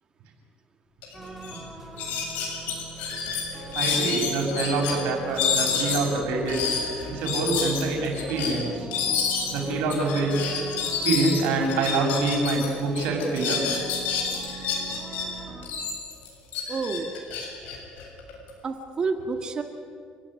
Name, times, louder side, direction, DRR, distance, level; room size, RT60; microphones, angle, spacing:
sound 1, 1.0-1.1 1.4-1.6 2.0-4.9 5.3-12.7 12.9-15.2 15.6-18.5, left 6 dB, 85° left, 7.3 m, -29 dB
sound 2, 1.1-15.7, right 3 dB, 10° right, 4.4 m, -41 dB
voice 1, 3.7-6.7 7.1-8.9 9.5-10.4 11.0-13.6, right 3 dB, 90° right, 1 dB, 6.0 m, -25 dB
voice 2, 16.7-17.1 17.4-17.5 18.6-19.6, right 4 dB, 30° right, 6 dB, 1.9 m, -29 dB
29.0 x 16.5 x 10.0 m, 2.2 s
cardioid pair, 145°, 3 cm